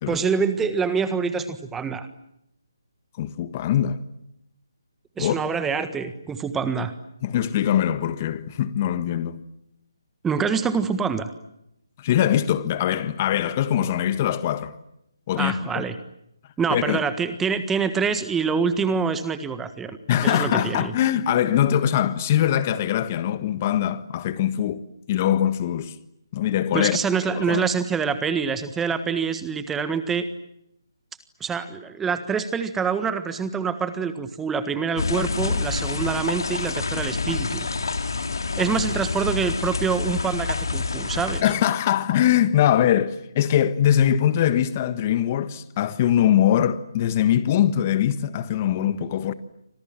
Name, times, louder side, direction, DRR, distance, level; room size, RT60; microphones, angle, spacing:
voice 1, 0.1-2.1 5.2-6.9 10.2-11.3 15.3-16.0 16.6-20.9 26.7-30.3 31.4-37.7 38.6-41.4, right 6 dB, 10° right, 1.5 m, -26 dB
voice 2, 3.2-4.0 5.2-5.4 7.2-9.4 12.0-14.8 15.3-15.8 16.7-17.0 20.1-26.0 26.3-27.0 27.3-27.6 41.4-49.3, left 10 dB, 30° left, 1.5 m, -22 dB
sound 1, 35.0-41.4, left 4 dB, 70° left, 3.4 m, -27 dB
30.0 x 25.5 x 7.6 m
figure-of-eight pair, 150°, 2 cm